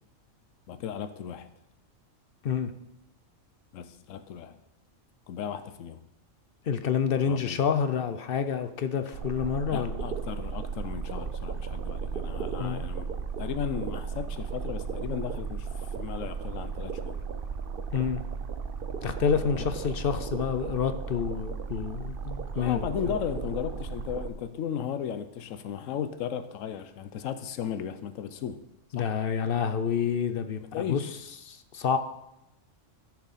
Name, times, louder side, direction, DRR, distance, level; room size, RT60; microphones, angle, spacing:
voice 1, 0.7-1.5 3.7-4.6 5.3-6.1 7.2-7.7 9.7-17.2 19.5-19.7 22.5-28.6 29.0-29.1 30.6-31.1, left 8 dB, 85° left, 12 dB, 1.0 m, -35 dB
voice 2, 6.7-9.9 12.6-12.8 17.9-18.2 19.0-22.8 28.9-30.6 30.9-31.0 31.4-32.0, left 7 dB, 55° left, 10 dB, 0.7 m, -28 dB
sound 1, 9.1-24.3, right 6 dB, 50° right, 0.8 m, -35 dB
13.5 x 7.1 x 4.1 m, 0.87 s
omnidirectional pair, 1.3 m